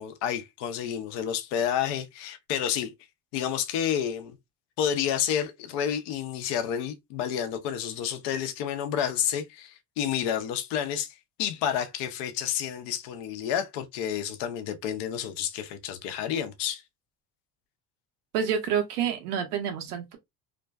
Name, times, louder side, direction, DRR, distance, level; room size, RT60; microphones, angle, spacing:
voice 1, 0.0-2.9 3.3-4.4 4.8-16.8, left 9 dB, 65° left, 0.7 m, -30 dB
voice 2, 18.3-20.2, right 8 dB, 85° right, 0.8 m, -28 dB
2.4 x 2.2 x 2.2 m
hypercardioid pair, 65°, 44 cm